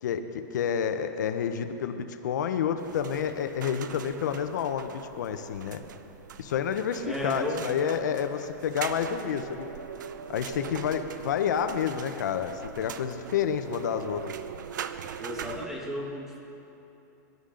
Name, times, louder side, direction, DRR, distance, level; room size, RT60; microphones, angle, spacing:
voice 1, 0.0-5.8 6.4-9.7 10.3-14.2, left 8 dB, 70° left, 8 dB, 0.9 m, -29 dB
sound 1, 2.8-15.7, right 8 dB, 85° right, 0.7 m, -41 dB
voice 2, 7.0-7.7 15.2-16.4, left 1 dB, 5° right, -1 dB, 1.5 m, -34 dB
22.5 x 11.5 x 3.9 m, 3.0 s
supercardioid pair, 165°, 10 cm